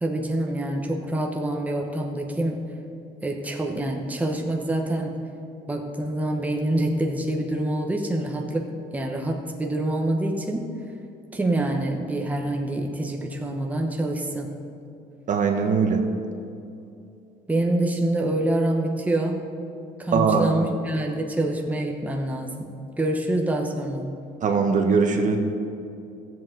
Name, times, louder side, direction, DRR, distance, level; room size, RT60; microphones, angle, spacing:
voice 1, 0.0-2.7 3.2-5.2 5.7-10.7 11.3-14.5 17.5-19.5 20.0-24.1, right 1 dB, 10° right, 1 dB, 1.0 m, -26 dB
voice 2, 15.3-16.0 20.1-20.5 24.4-25.4, right 5 dB, 50° right, 4 dB, 1.0 m, -21 dB
13.5 x 7.8 x 3.8 m, 2.7 s
cardioid pair, 110°, 17 cm